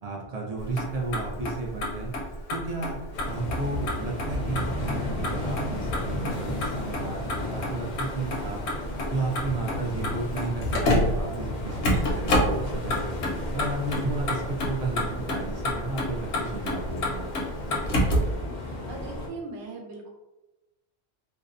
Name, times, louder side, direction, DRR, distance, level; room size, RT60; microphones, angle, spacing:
voice 1, 0.0-2.1 2.5-3.0 3.3-8.6 9.1-13.1 13.5-17.3, right 3 dB, 55° right, -1 dB, 0.4 m, -33 dB
Motor vehicle (road), 0.6-18.4, left 1 dB, 80° left, 0.9 m, -29 dB
sound 1, 3.1-19.3, left 1 dB, 50° left, 0.5 m, -34 dB
voice 2, 18.5-20.1, right 3 dB, 80° right, 0 dB, 0.9 m, -40 dB
2.6 x 2.0 x 2.4 m, 1.0 s
omnidirectional pair, 1.1 m